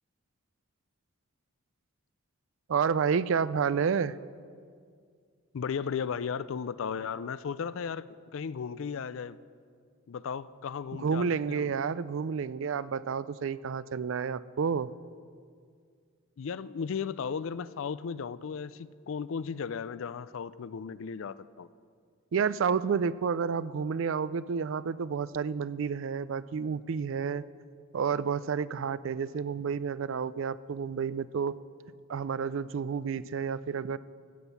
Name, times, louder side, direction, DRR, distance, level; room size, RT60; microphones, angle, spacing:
voice 1, 2.7-4.2 10.9-14.9 22.3-27.4 27.9-31.6 32.1-34.0, right 6 dB, 60° right, 17 dB, 0.4 m, -30 dB
voice 2, 5.5-9.4 10.1-11.7 16.4-21.7, left 6 dB, 60° left, 17 dB, 0.4 m, -35 dB
14.5 x 8.1 x 7.0 m, 2.1 s
head